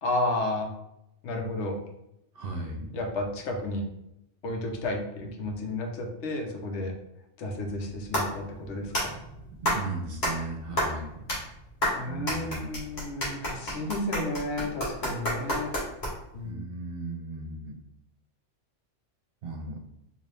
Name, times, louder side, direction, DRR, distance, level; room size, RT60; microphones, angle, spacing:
voice 1, 0.0-0.7 1.2-1.8 2.9-3.9 4.4-6.9 7.4-9.2 11.9-15.7 16.3-16.6, left 2 dB, 70° left, 2 dB, 1.0 m, -32 dB
voice 2, 2.3-3.0 9.6-11.3 12.0-12.8 16.4-17.7 19.4-19.8, right 2 dB, 55° right, 1 dB, 0.8 m, -36 dB
sound 1, 7.7-16.4, equal, 40° left, 1.3 m, -31 dB
4.0 x 2.6 x 3.3 m, 0.81 s
omnidirectional pair, 1.3 m